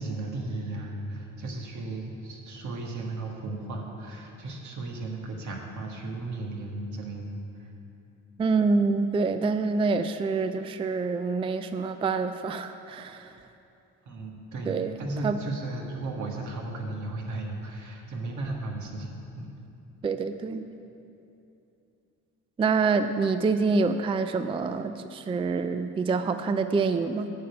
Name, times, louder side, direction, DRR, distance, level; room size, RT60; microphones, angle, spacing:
voice 1, 0.0-7.4 14.0-19.5, right 2 dB, 75° right, 0 dB, 1.6 m, -35 dB
voice 2, 8.4-13.3 14.7-15.4 20.0-20.6 22.6-27.3, right 4 dB, 20° right, 10 dB, 0.3 m, -26 dB
9.8 x 5.2 x 7.9 m, 2.8 s
cardioid pair, 90°, 30 cm